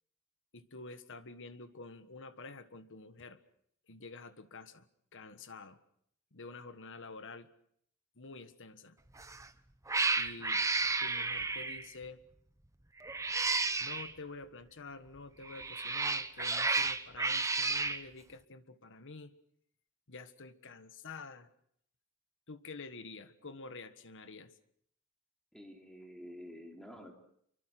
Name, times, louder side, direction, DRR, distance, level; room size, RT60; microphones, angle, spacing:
voice 1, 0.5-3.4 3.9-5.8 6.3-7.5 8.2-9.0 10.2-10.6 11.0-12.2 13.8-19.3 20.1-21.5 22.5-24.5, left 3 dB, 60° left, 11 dB, 1.6 m, -49 dB
Cat, 9.2-9.5 9.9-11.9 13.0-14.1 15.4-18.0, right 3 dB, 15° right, 0.9 m, -32 dB
voice 2, 25.5-27.1, equal, 5° left, 2 dB, 3.9 m, -49 dB
27.5 x 24.0 x 6.0 m, 0.68 s
head